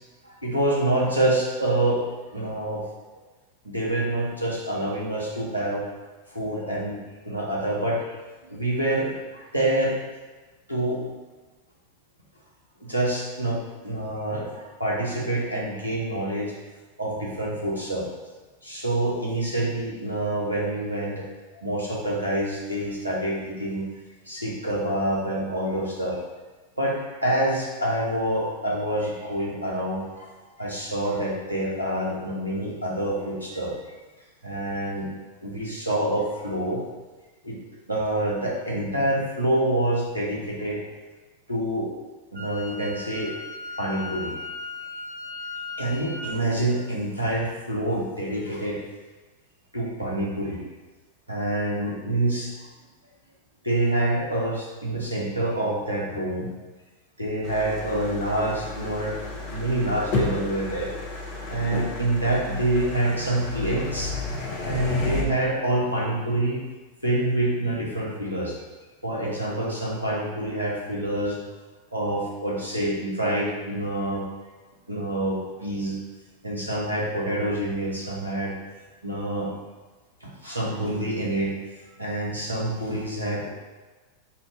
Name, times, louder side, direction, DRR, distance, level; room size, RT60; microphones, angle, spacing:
voice 1, 0.2-2.0 2.3-2.9 3.6-5.9 6.3-7.0 7.2-8.2 8.5-10.0 10.7-11.0 12.8-16.5 17.0-18.1 18.6-21.3 21.5-23.9 24.3-26.2 26.8-30.3 30.6-33.8 34.4-35.1 35.4-36.8 37.4-37.6 37.9-40.8 41.5-41.9 42.3-43.3 43.8-44.4 45.8-48.8 49.7-50.6 51.3-52.5 53.6-56.5 57.2-59.2 59.5-60.9 61.5-64.1 64.6-66.6 67.0-68.6 69.0-71.4 71.9-74.2 74.9-76.0 76.4-78.5 79.0-79.5 80.2-81.5 82.0-83.5, right 1 dB, 85° right, -4 dB, 1.0 m, -27 dB
Wind instrument woodwind instrument, 42.3-46.3, left 3 dB, 65° right, 0.8 m, -37 dB
sound 1, 57.4-65.2, left 3 dB, 45° left, 0.9 m, -32 dB
5.5 x 2.6 x 3.6 m, 1.3 s
figure-of-eight pair, 90°, 0 cm